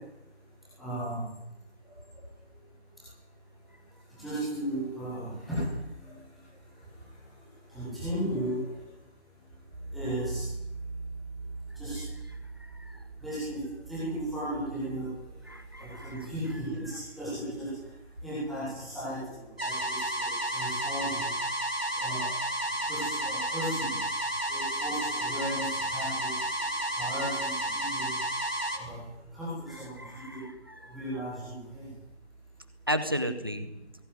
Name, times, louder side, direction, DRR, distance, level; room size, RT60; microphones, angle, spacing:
voice 1, 0.8-1.2 4.2-5.6 7.7-8.5 9.9-10.4 11.8-12.0 13.2-13.6 13.9-15.1 16.0-17.7 18.2-19.2 19.6-19.9 20.2-21.2 21.9-22.3 22.8-24.0 24.5-26.3 26.9-28.1 28.8-29.0 29.3-30.0 30.3-30.4 30.9-31.8, right 1 dB, ahead, -12 dB, 1.6 m, -35 dB
voice 2, 15.5-16.3 30.0-30.9 32.9-33.7, equal, 20° right, 11 dB, 1.0 m, -34 dB
sound 1, 19.6-28.8, right 1 dB, 60° right, 5.0 m, -31 dB
20.0 x 17.5 x 9.3 m, 0.92 s
figure-of-eight pair, 165°, 34 cm